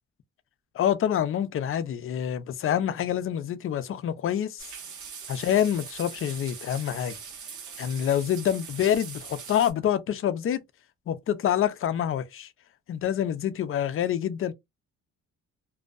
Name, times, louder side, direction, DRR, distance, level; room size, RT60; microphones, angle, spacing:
voice 1, 0.8-4.7 5.3-7.1 7.8-10.6 11.1-12.5 12.9-14.5, left 10 dB, 45° left, 0.4 m, -26 dB
sound 1, 4.6-9.7, right 6 dB, 75° right, 0.9 m, -41 dB
2.6 x 2.1 x 2.3 m
cardioid pair, 90°, 30 cm